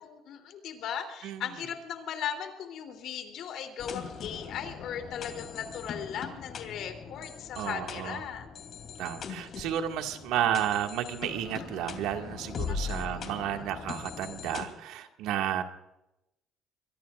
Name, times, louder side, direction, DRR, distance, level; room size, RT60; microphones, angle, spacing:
voice 1, 0.0-8.5 12.7-13.6 15.3-15.6, left 8 dB, 65° left, 5 dB, 3.2 m, -38 dB
sound 1, 3.8-14.7, left 6 dB, 50° left, 2.9 m, -40 dB
voice 2, 7.6-8.2 9.0-15.6, right 10 dB, 85° right, 4 dB, 1.9 m, -32 dB
23.0 x 23.0 x 2.5 m, 0.88 s
cardioid pair, 120°, 0 cm